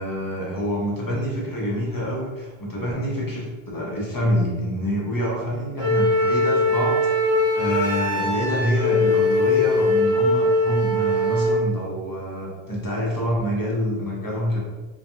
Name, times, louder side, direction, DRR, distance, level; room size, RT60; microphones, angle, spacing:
voice 1, 0.0-14.6, equal, 35° left, -4 dB, 0.3 m, -26 dB
Wind instrument woodwind instrument, 5.8-11.6, left 1 dB, 85° right, 1.1 m, -21 dB
2.5 x 2.3 x 2.6 m, 1.3 s
omnidirectional pair, 1.0 m